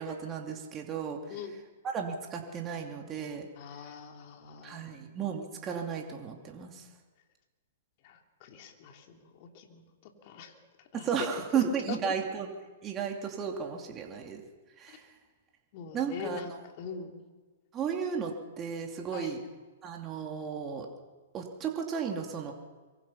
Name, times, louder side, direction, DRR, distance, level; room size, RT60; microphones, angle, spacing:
voice 1, 0.0-1.2 1.8-3.5 4.6-6.8 10.9-12.5 12.8-14.4 14.8-15.0 15.9-16.6 17.7-19.4 19.8-20.9 21.3-22.5, right 7 dB, 25° right, 1 dB, 2.8 m, -34 dB
voice 2, 3.6-5.0 8.0-10.5 10.9-11.1 11.5-12.0 15.7-16.5 16.8-17.2 19.1-19.4, left 7 dB, 45° left, 3 dB, 3.5 m, -43 dB
24.5 x 23.5 x 5.7 m, 1.3 s
hypercardioid pair, 120°, 0 cm